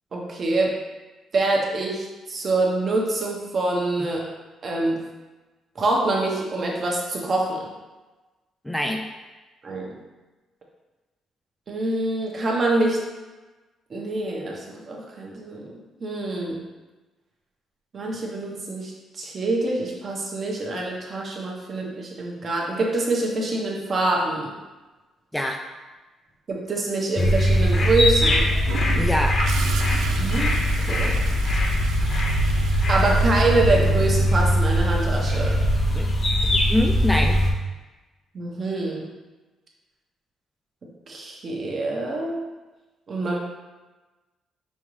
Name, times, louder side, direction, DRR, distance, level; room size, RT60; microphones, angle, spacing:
voice 1, 0.1-0.7 1.3-4.2 4.6-5.0 5.7-7.7 9.6-10.0 11.7-13.0 13.9-16.6 17.9-24.5 26.5-28.5 30.2-30.6 30.9-31.2 32.9-35.6 38.3-39.1 41.1-42.4 43.1-43.4, right 2 dB, 45° right, -2 dB, 1.0 m, -25 dB
voice 2, 8.7-9.1 25.3-25.6 29.0-29.4 36.0-36.1 36.7-37.4, left 1 dB, 5° left, 2 dB, 0.3 m, -24 dB
sound 1, 27.2-37.5, equal, 45° left, 0.9 m, -21 dB
Gurgling / Toilet flush, 28.7-34.4 36.4-36.6, right 6 dB, 80° right, 0.3 m, -36 dB
5.3 x 2.6 x 3.1 m, 1.2 s
cardioid pair, 90°, 0 cm